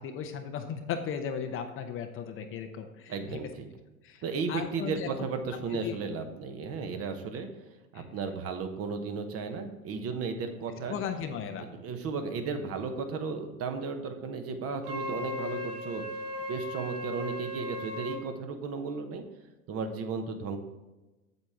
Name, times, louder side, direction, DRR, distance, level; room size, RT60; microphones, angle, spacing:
voice 1, 0.0-3.4 4.0-4.2 4.5-5.1 5.8-6.0 7.9-8.0 10.9-11.7, left 7 dB, 30° left, 6 dB, 0.8 m, -36 dB
voice 2, 3.1-3.6 4.2-7.5 7.9-11.0 11.6-16.0 16.5-19.2 19.7-20.6, right 4 dB, 30° right, 6 dB, 1.1 m, -34 dB
Wind instrument woodwind instrument, 14.8-18.2, left 1 dB, 80° right, 3.0 m, -37 dB
7.9 x 7.6 x 3.6 m, 1.1 s
hypercardioid pair, 95°, 44 cm